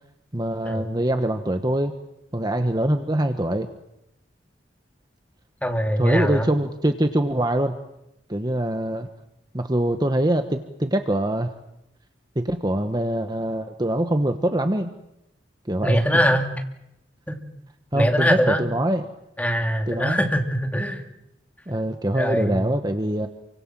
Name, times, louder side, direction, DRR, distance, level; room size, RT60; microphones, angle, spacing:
voice 1, 0.3-1.9 2.3-3.7 6.0-7.7 8.3-9.1 9.5-11.5 12.3-14.9 15.7-16.0 17.9-19.0 19.9-20.2 21.7-23.3, right 1 dB, 20° right, 7 dB, 1.3 m, -23 dB
voice 2, 5.6-6.5 15.8-16.5 17.3-17.4 17.9-18.6 19.4-21.0 22.2-22.7, equal, 10° left, 3 dB, 2.8 m, -22 dB
28.5 x 25.0 x 7.5 m, 0.84 s
head